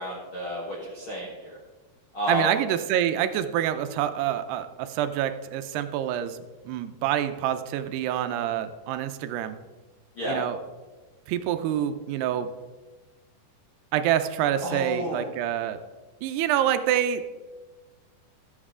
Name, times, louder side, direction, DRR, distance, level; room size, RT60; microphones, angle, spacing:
voice 1, 0.0-1.6 2.1-2.5 10.2-10.4 14.6-15.2, equal, 60° left, -5 dB, 1.3 m, -31 dB
voice 2, 2.3-6.4 6.7-9.6 10.3-10.6 11.3-12.5 13.9-15.8 16.2-17.3, right 11 dB, 80° right, 9 dB, 2.6 m, -26 dB
14.0 x 7.9 x 3.7 m, 1.2 s
omnidirectional pair, 4.8 m